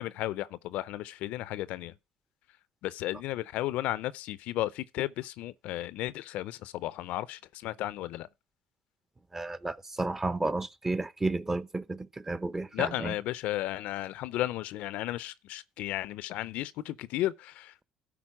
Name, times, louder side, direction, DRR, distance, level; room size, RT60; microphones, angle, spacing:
voice 1, 0.0-1.9 2.8-8.3 12.7-17.7, left 15 dB, 70° left, 0.5 m, -34 dB
voice 2, 9.3-13.1, right 2 dB, 15° right, 0.8 m, -32 dB
12.0 x 4.1 x 7.3 m
hypercardioid pair, 70°, 2 cm